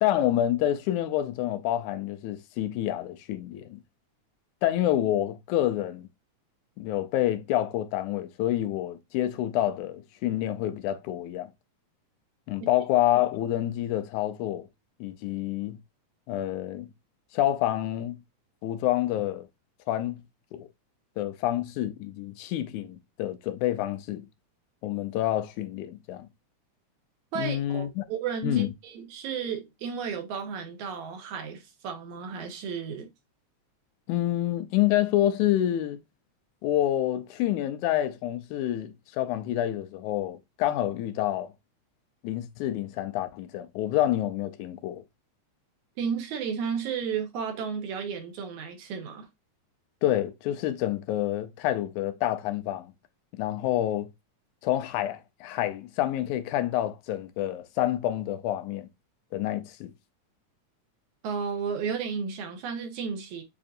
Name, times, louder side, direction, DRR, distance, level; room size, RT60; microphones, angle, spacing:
voice 1, 0.0-3.8 4.6-6.1 6.8-11.5 12.5-14.7 15.0-15.8 16.3-16.9 17.3-18.2 18.6-19.5 19.9-20.2 20.5-20.7 21.2-24.3 24.8-26.3 27.4-28.0 28.4-28.7 34.1-36.0 36.6-41.5 42.2-45.0 50.0-52.9 53.4-54.1 54.6-58.9 59.3-59.9, left 13 dB, 85° left, 2.0 m, -28 dB
voice 2, 27.3-33.1 46.0-49.3 61.2-63.4, right 6 dB, 80° right, 2.3 m, -33 dB
7.1 x 2.6 x 2.5 m
omnidirectional pair, 3.4 m